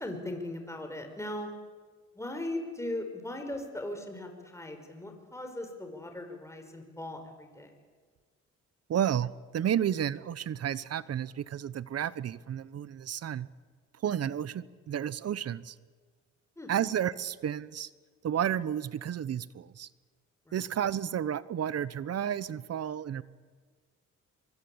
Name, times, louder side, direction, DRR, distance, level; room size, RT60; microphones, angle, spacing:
voice 1, 0.0-1.5 2.1-7.7 16.6-16.7 20.5-20.6, left 1 dB, 10° left, 5 dB, 5.4 m, -38 dB
voice 2, 8.9-13.5 14.0-15.7 16.7-17.9 18.2-19.9 20.5-23.2, right 9 dB, 55° right, 18 dB, 1.0 m, -31 dB
24.0 x 22.5 x 8.8 m, 1.5 s
cardioid pair, 90°, 30 cm